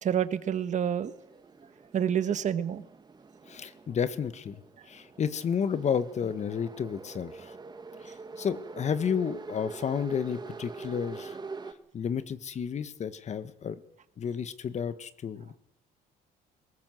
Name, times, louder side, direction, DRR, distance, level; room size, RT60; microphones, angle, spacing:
voice 1, 0.0-1.1 1.9-2.8, right 9 dB, 45° right, 12 dB, 1.5 m, -28 dB
sound 1, 1.1-11.7, right 4 dB, 25° right, 1.6 m, -44 dB
voice 2, 3.5-4.6 4.9-7.5 8.0-11.4 11.9-13.8 14.2-15.6, left 7 dB, 40° left, 13 dB, 1.5 m, -31 dB
21.0 x 19.0 x 7.9 m, 0.84 s
cardioid pair, 110°, 17 cm